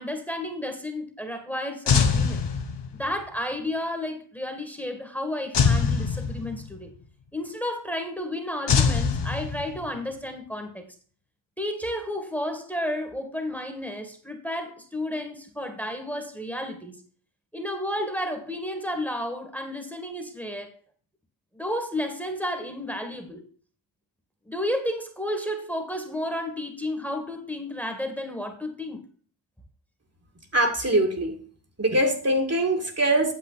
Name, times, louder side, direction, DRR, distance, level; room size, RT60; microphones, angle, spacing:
voice 1, 0.0-2.4 2.9-6.9 7.3-10.9 11.6-17.0 17.5-20.8 21.5-23.5 24.5-29.0, left 1 dB, 5° left, 6 dB, 1.9 m, -32 dB
sound 1, 1.9-3.1 5.5-6.8 8.7-10.0, left 5 dB, 60° left, 1.4 m, -23 dB
voice 2, 30.5-31.4 31.8-33.3, right 1 dB, 30° right, 3 dB, 2.1 m, -23 dB
9.0 x 7.4 x 4.0 m, 0.42 s
cardioid pair, 70°, 47 cm